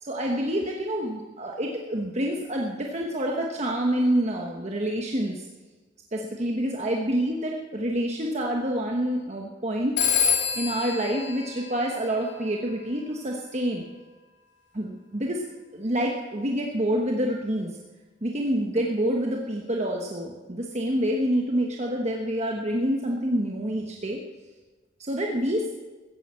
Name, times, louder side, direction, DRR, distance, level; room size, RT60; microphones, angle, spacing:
voice 1, 0.0-5.5 6.1-10.0 10.5-13.9 14.7-15.4 15.7-17.8 18.2-24.2 25.0-25.7, equal, 35° right, 0 dB, 1.2 m, -27 dB
Telephone, 10.0-12.5, left 7 dB, 60° left, 3.1 m, -27 dB
15.0 x 10.0 x 7.6 m, 1.3 s
head